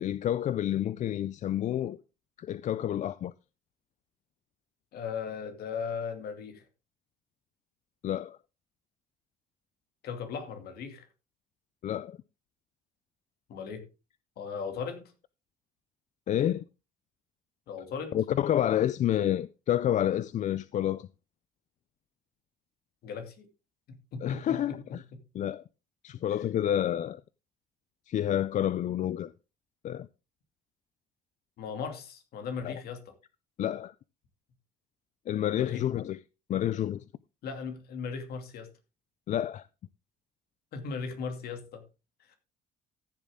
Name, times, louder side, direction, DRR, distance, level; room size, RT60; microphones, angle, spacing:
voice 1, 0.0-2.0 2.4-3.3 8.0-8.4 11.8-12.2 16.3-16.6 18.1-21.1 24.2-25.0 25.3-25.6 26.0-27.2 28.1-29.3 29.8-30.1 32.6-32.8 33.6-33.9 35.3-36.2 36.5-37.0 39.3-39.7, left 11 dB, 45° left, 0.4 m, -29 dB
voice 2, 4.9-6.6 10.0-11.1 13.5-13.9 14.4-15.1 17.7-18.2 23.0-23.5 23.9-24.8 25.1-25.2 31.6-33.0 35.5-35.9 37.4-38.7 40.7-41.8 42.3-42.4, left 5 dB, 65° left, 2.5 m, -37 dB
14.5 x 7.2 x 3.7 m
cardioid pair, 110°, 17 cm